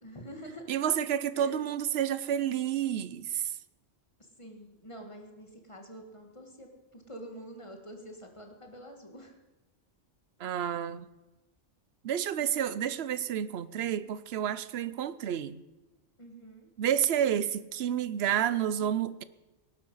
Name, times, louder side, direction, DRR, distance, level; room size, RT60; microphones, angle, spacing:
voice 1, 0.0-0.7 1.3-1.6 4.4-9.3 16.2-16.7, equal, 25° left, 2.0 m, -47 dB
voice 2, 0.7-3.5 10.4-11.1 12.0-15.6 16.8-19.2, right 9 dB, 65° right, 0.9 m, -30 dB
18.5 x 12.0 x 5.6 m
omnidirectional pair, 1.2 m